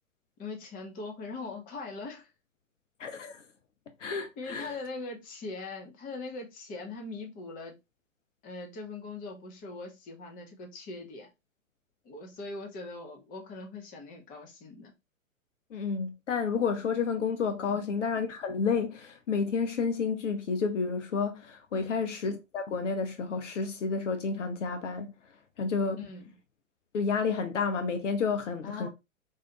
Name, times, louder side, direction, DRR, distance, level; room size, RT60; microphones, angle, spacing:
voice 1, 0.4-2.3 4.4-7.7 8.4-11.3 12.0-14.9 17.7-17.9 21.7-22.1 26.0-26.3 28.6-28.9, left 3 dB, 20° left, 1.0 m, -41 dB
voice 2, 3.0-3.4 4.0-4.7 15.7-25.1 25.6-26.0 26.9-28.9, left 5 dB, 60° left, 0.9 m, -30 dB
4.7 x 2.7 x 2.9 m
figure-of-eight pair, 115°, 42 cm